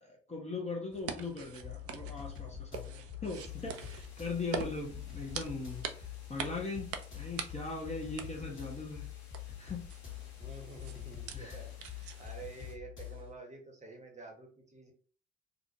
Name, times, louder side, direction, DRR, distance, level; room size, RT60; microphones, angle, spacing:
voice 1, 0.0-9.1 9.6-9.9 11.3-11.6, left 3 dB, 20° left, -1 dB, 0.7 m, -40 dB
sound 1, 0.9-12.5, right 7 dB, 50° right, 0.4 m, -45 dB
sound 2, 1.6-13.3, left 12 dB, 40° left, 1.2 m, -45 dB
sound 3, 3.3-12.8, left 4 dB, 80° left, 0.7 m, -60 dB
voice 2, 10.4-14.9, right 3 dB, 20° right, 2 dB, 0.9 m, -50 dB
2.5 x 2.1 x 2.7 m, 0.40 s
hypercardioid pair, 50°, 32 cm